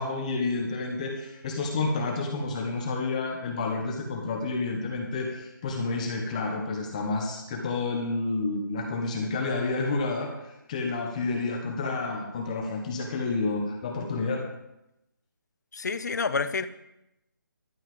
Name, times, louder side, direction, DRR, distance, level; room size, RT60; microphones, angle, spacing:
voice 1, 0.0-14.4, left 3 dB, 20° left, 2 dB, 1.2 m, -30 dB
voice 2, 15.7-16.7, left 4 dB, 55° left, 13 dB, 0.8 m, -28 dB
12.0 x 5.6 x 7.8 m, 0.88 s
hypercardioid pair, 170°, 11 cm